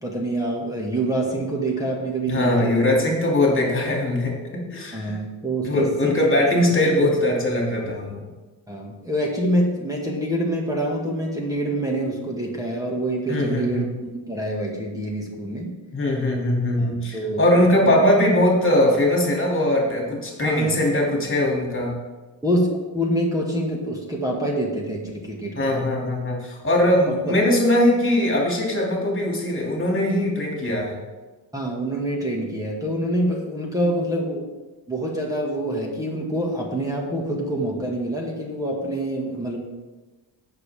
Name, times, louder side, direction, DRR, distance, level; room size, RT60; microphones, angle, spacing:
voice 1, 0.0-2.9 4.9-6.5 7.0-7.1 8.7-15.7 16.8-17.9 20.4-20.8 22.4-25.8 27.1-27.3 31.5-34.5 34.9-39.6, right 1 dB, 10° right, -2 dB, 2.0 m, -26 dB
voice 2, 2.3-5.1 5.6-8.2 13.3-13.9 15.9-22.0 25.5-31.0, left 1 dB, 25° left, -2 dB, 2.9 m, -21 dB
18.0 x 6.8 x 3.7 m, 1.2 s
cardioid pair, 140°, 46 cm